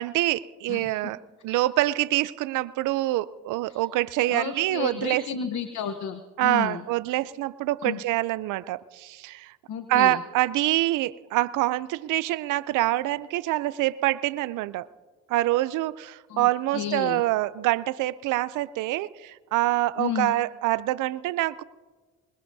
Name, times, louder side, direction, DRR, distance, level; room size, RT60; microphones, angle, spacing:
voice 1, 0.0-5.2 6.4-9.5 9.9-14.9 15.3-21.6, right 16 dB, 90° right, 0.5 m, -26 dB
voice 2, 4.3-6.8 7.8-8.0 9.7-10.2 16.3-16.5 16.7-17.2 20.0-20.3, left 8 dB, 70° left, 1.0 m, -32 dB
24.5 x 21.5 x 2.7 m
cardioid pair, 90°, 30 cm